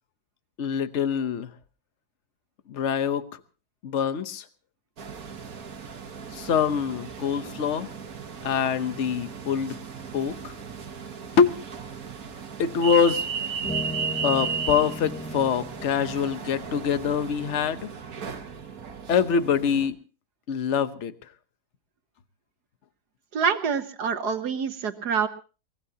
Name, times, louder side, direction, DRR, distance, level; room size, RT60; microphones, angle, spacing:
voice 1, 0.6-1.5 2.7-3.2 3.8-4.4 6.3-7.9 8.4-9.8 10.1-10.5 11.4-11.6 12.6-13.3 14.2-17.9 19.1-20.0 20.5-21.1, left 7 dB, 50° left, 12 dB, 1.2 m, -24 dB
sound 1, 5.0-19.9, right 6 dB, 65° right, 1.9 m, -35 dB
sound 2, 13.3-13.4 13.6-17.0, equal, 15° left, 0.3 m, -37 dB
voice 2, 23.3-25.3, right 6 dB, 85° right, 9 dB, 1.9 m, -26 dB
23.5 x 19.5 x 2.9 m, 0.36 s
omnidirectional pair, 1.7 m